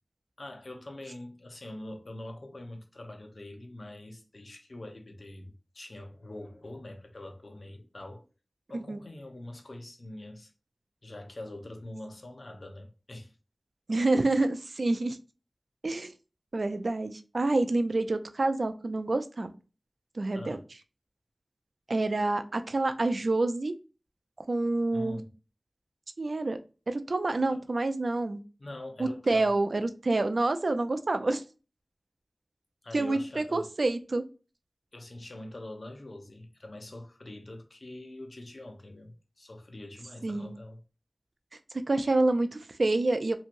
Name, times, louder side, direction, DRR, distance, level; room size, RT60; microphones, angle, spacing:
voice 1, 0.4-8.3 8.7-10.5 11.0-13.3 20.3-20.6 24.9-25.3 27.5-27.6 28.6-29.5 32.8-33.7 34.9-40.8, left 1 dB, 75° left, 0.7 m, -44 dB
voice 2, 13.9-15.2 15.8-16.1 16.5-19.5 20.2-20.6 21.9-23.7 24.5-25.2 26.2-26.6 26.9-28.4 29.0-31.4 32.9-34.2 40.2-40.6 41.9-43.3, right 2 dB, 80° right, 0.3 m, -27 dB
2.9 x 2.7 x 2.5 m
wide cardioid pair, 55°, 0 cm